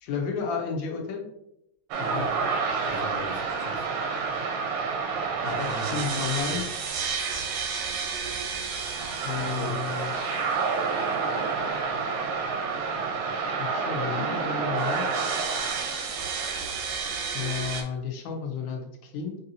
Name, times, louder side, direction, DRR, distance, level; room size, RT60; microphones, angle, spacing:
voice 1, 0.0-1.2 5.6-6.7 9.2-10.1 13.6-15.1 17.3-19.4, left 6 dB, 75° left, 1 dB, 1.3 m, -32 dB
sound 1, 1.9-17.8, right 5 dB, 85° right, 1.4 m, -29 dB
voice 2, 2.0-2.3 2.8-3.8 5.4-6.6 9.3-9.8, left 2 dB, 35° left, -5 dB, 0.4 m, -37 dB
4.7 x 2.7 x 2.6 m, 0.80 s
omnidirectional pair, 2.3 m